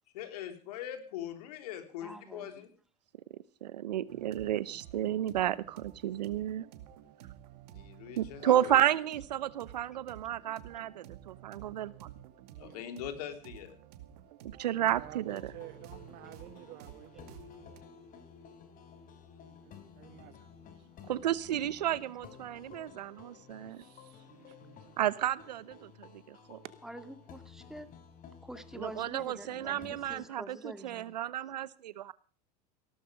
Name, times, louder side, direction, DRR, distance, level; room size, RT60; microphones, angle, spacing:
voice 1, 0.1-2.7 7.7-8.9 12.6-13.8, left 10 dB, 70° left, 8 dB, 3.4 m, -42 dB
voice 2, 2.0-2.5 26.8-27.9 28.4-31.2, right 1 dB, ahead, 10 dB, 2.1 m, -46 dB
voice 3, 3.6-6.6 8.2-12.1 14.6-15.4 21.1-23.8 25.0-26.6 28.8-32.1, right 12 dB, 85° right, 19 dB, 0.9 m, -32 dB
sound 1, 4.1-17.8, right 12 dB, 70° right, 2.4 m, -52 dB
voice 4, 12.5-12.9 14.8-17.4 18.1-18.2 19.4-20.9 23.7-25.0 29.5-29.6, right 14 dB, 55° right, 14 dB, 1.7 m, -51 dB
sound 2, 15.2-30.3, left 6 dB, 40° left, 3.8 m, -54 dB
17.0 x 13.0 x 5.2 m, 0.40 s
hypercardioid pair, 95°, 21 cm